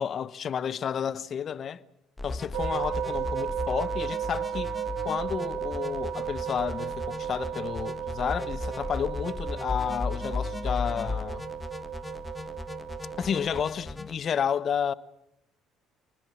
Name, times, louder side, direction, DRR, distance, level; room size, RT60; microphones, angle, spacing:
voice 1, 0.0-1.8 2.2-4.7 5.0-11.4 13.2-14.9, left 8 dB, 50° left, 1.1 m, -31 dB
sound 1, 2.2-14.2, left 3 dB, 15° left, 1.7 m, -36 dB
sound 2, 2.5-13.7, right 9 dB, 80° right, 3.5 m, -35 dB
27.0 x 19.5 x 7.2 m
supercardioid pair, 80°, 0 cm